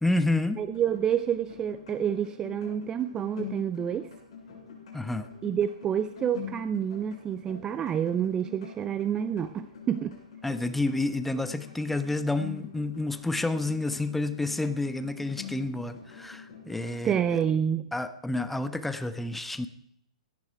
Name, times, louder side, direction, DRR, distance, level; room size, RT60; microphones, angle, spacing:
voice 1, 0.0-0.6 4.9-5.3 10.4-17.4 17.9-19.7, left 2 dB, 5° left, 10 dB, 1.0 m, -29 dB
sound 1, 0.6-17.4, left 7 dB, 60° left, 7.9 m, -45 dB
voice 2, 0.6-4.1 5.4-10.2 17.0-17.9, right 9 dB, 20° right, 13 dB, 0.6 m, -28 dB
17.5 x 12.0 x 4.7 m, 0.77 s
figure-of-eight pair, 120°, 4 cm